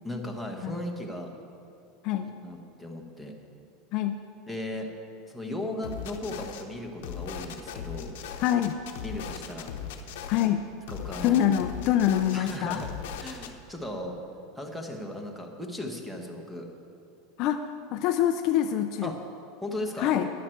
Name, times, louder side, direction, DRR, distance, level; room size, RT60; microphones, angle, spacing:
voice 1, 0.0-1.3 2.4-3.3 4.5-4.9 5.3-8.1 9.0-9.7 10.9-11.4 12.3-12.9 13.2-14.2 14.5-16.7 19.0-19.2 19.6-20.2, left 1 dB, ahead, 2 dB, 0.9 m, -36 dB
voice 2, 3.9-4.2 8.4-8.7 10.3-10.6 11.2-12.8 17.4-19.1 20.0-20.3, left 11 dB, 40° left, 7 dB, 0.4 m, -25 dB
sound 1, 5.8-6.6 7.0-10.5 10.9-13.5, left 8 dB, 70° left, 0.9 m, -38 dB
12.5 x 10.0 x 4.5 m, 2.7 s
supercardioid pair, 175°, 0 cm